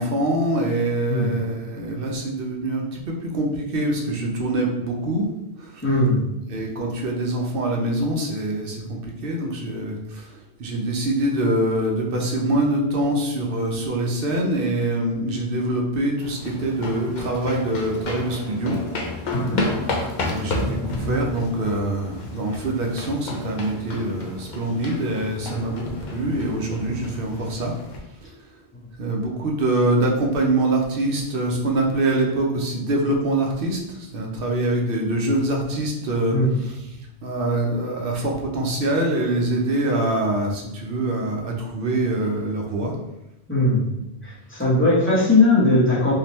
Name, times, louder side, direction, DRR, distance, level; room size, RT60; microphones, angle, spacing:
voice 1, 0.0-5.3 5.6-5.8 6.5-18.8 20.3-27.7 28.2-28.3 29.0-36.4 36.6-42.9, right 1 dB, 60° right, 0 dB, 0.9 m, -24 dB
voice 2, 5.8-6.3 19.3-19.6 36.3-36.6 43.5-43.9 44.2-46.1, left 2 dB, 10° left, -7 dB, 1.1 m, -19 dB
sound 1, 16.2-28.0, left 2 dB, 50° left, 0.7 m, -31 dB
3.5 x 2.8 x 3.0 m, 0.92 s
omnidirectional pair, 1.1 m